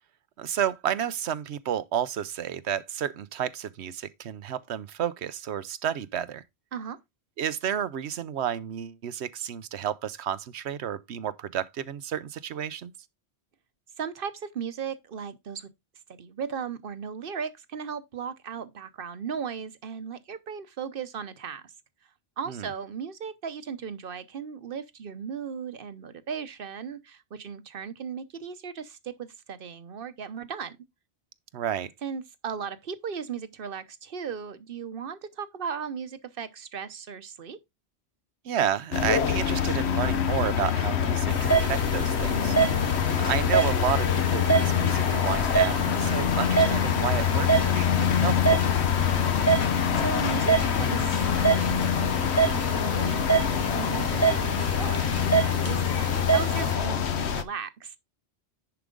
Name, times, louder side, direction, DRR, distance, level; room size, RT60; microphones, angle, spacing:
voice 1, 0.4-6.4 7.4-12.9 22.5-22.7 31.5-31.9 38.4-42.6 43.2-48.6, right 9 dB, 85° right, 1.0 m, -31 dB
voice 2, 14.0-15.7 16.1-21.7 22.4-30.8 32.0-37.6 46.2-46.5 50.0-55.1 55.6-58.0, right 6 dB, 60° right, 1.0 m, -36 dB
sound 1, 38.9-57.4, left 8 dB, 85° left, 1.2 m, -25 dB
sound 2, 41.3-56.7, right 4 dB, 15° left, 0.8 m, -27 dB
10.5 x 4.8 x 3.8 m
omnidirectional pair, 1.1 m